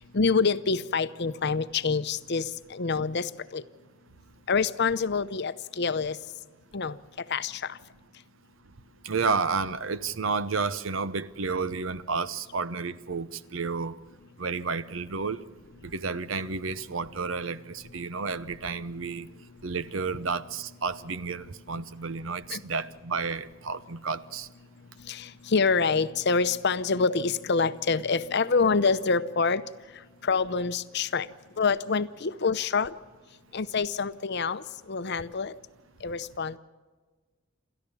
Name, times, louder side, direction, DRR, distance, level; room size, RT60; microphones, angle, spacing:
voice 1, 0.1-3.6 4.5-6.2 6.7-7.0 7.3-7.7 22.5-22.6 25.1-29.6 30.2-31.3 31.6-32.9 33.5-35.5 36.0-36.6, left 4 dB, 55° left, 0.7 m, -26 dB
voice 2, 9.0-14.0 14.4-15.4 15.8-19.3 19.6-24.5, right 4 dB, 70° right, 0.8 m, -31 dB
28.0 x 14.0 x 7.2 m
head